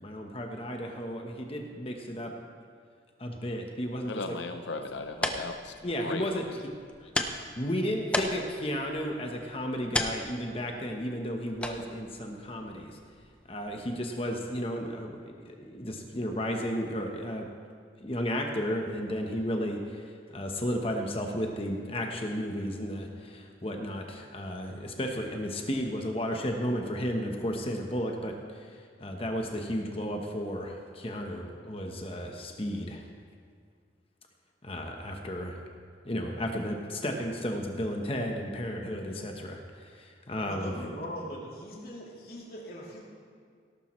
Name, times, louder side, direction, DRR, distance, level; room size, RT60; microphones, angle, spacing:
voice 1, 0.0-2.3 3.2-4.4 5.8-6.4 7.6-13.0 13.5-17.5 18.0-28.7 29.0-33.0 34.6-35.6 36.0-40.7, equal, 30° left, 2 dB, 1.0 m, -33 dB
voice 2, 4.1-5.7 6.0-6.4, left 3 dB, 85° left, 7 dB, 0.7 m, -37 dB
sound 1, 4.8-14.0, left 1 dB, 5° left, 0.6 m, -37 dB
voice 3, 40.4-43.0, equal, 55° left, -5 dB, 3.1 m, -40 dB
17.5 x 12.0 x 3.2 m, 2.1 s
head